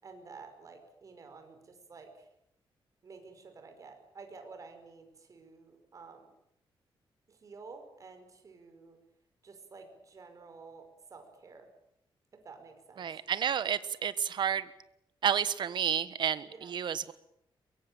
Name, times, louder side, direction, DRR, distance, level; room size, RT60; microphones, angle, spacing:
voice 1, 0.0-2.3 3.0-6.3 7.3-9.0 9.4-11.7 12.3-13.1 16.4-16.7, right 4 dB, 40° right, 6 dB, 5.4 m, -51 dB
voice 2, 13.0-14.7 15.2-17.1, right 8 dB, 60° right, 14 dB, 1.4 m, -30 dB
23.0 x 22.5 x 9.0 m, 0.77 s
wide cardioid pair, 165°, 9 cm